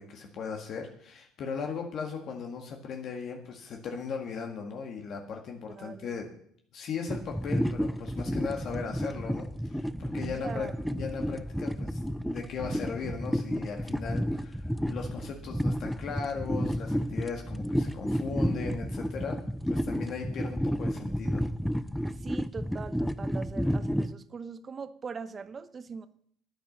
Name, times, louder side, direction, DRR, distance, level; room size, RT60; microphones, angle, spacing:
voice 1, 0.0-6.3 6.7-21.4, left 5 dB, 55° left, 2 dB, 1.8 m, -38 dB
voice 2, 5.7-6.1 10.4-10.7 22.1-26.1, right 5 dB, 30° right, 12 dB, 0.8 m, -41 dB
sound 1, 7.1-24.1, equal, ahead, 0.5 m, -31 dB
10.0 x 9.1 x 7.3 m, 0.65 s
supercardioid pair, 90°, 0 cm